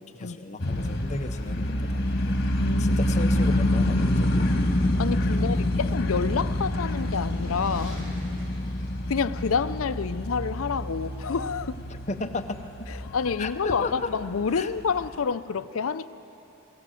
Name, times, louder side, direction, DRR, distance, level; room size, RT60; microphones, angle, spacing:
voice 1, 0.0-2.4 2.8-4.5 5.4-5.8 11.9-12.9 13.4-14.1 14.5-14.7, left 2 dB, 35° left, 6 dB, 0.8 m, -35 dB
sound 1, 0.6-15.1, left 1 dB, 50° left, 1.6 m, -27 dB
voice 2, 2.6-3.0 5.0-8.1 9.1-11.7 12.9-16.1, left 5 dB, 75° left, 13 dB, 0.5 m, -28 dB
sound 2, 5.1-9.8, equal, 40° right, 2.9 m, -46 dB
22.0 x 15.5 x 7.6 m, 2.9 s
head